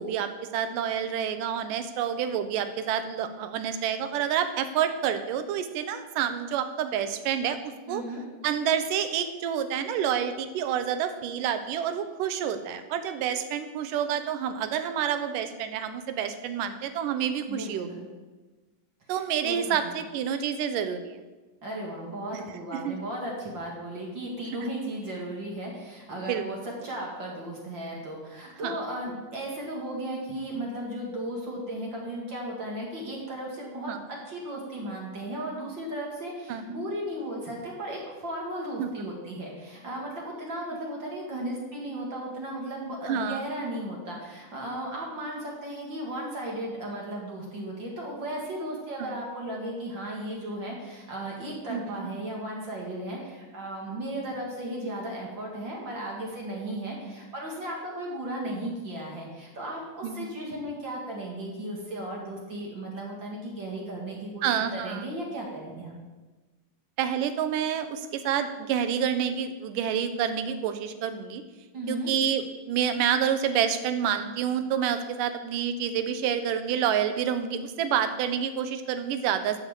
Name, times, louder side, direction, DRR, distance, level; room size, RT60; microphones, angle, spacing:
voice 1, 0.0-7.6 7.9-8.0 8.4-17.9 19.1-21.2 22.7-23.0 26.3-26.4 28.6-28.8 33.9-34.0 36.5-36.8 38.8-38.9 43.1-43.4 49.0-49.2 51.7-52.1 60.0-60.4 64.4-65.1 67.0-71.4 71.9-79.6, right 8 dB, 85° right, 10 dB, 2.4 m, -28 dB
voice 2, 7.9-8.3 17.5-18.1 19.1-19.9 21.6-33.9 34.3-66.0 71.7-72.1, right 1 dB, 40° right, -2 dB, 2.2 m, -35 dB
12.0 x 5.9 x 7.2 m, 1.2 s
omnidirectional pair, 3.7 m